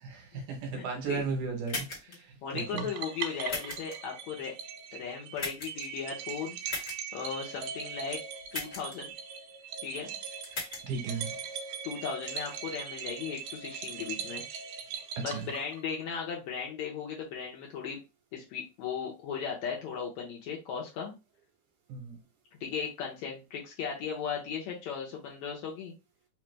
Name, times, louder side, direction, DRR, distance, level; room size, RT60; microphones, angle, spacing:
voice 1, 0.0-2.9 10.8-11.4 15.2-15.4 21.9-22.2, right 5 dB, 70° right, 2.3 m, -35 dB
voice 2, 0.7-1.2 2.4-4.5 4.9-6.6 7.1-8.2 8.5-9.1 9.8-10.2 11.8-14.4 15.2-18.0 18.3-21.1 22.6-25.9, left 6 dB, 70° left, 1.8 m, -37 dB
sound 1, 1.7-2.2 3.5-3.9 5.4-5.8 6.7-7.0 8.5-9.0 10.4-10.8, left 3 dB, 40° left, 1.3 m, -36 dB
sound 2, 2.6-16.0, right 7 dB, 85° right, 2.2 m, -40 dB
5.1 x 2.4 x 3.2 m
omnidirectional pair, 3.8 m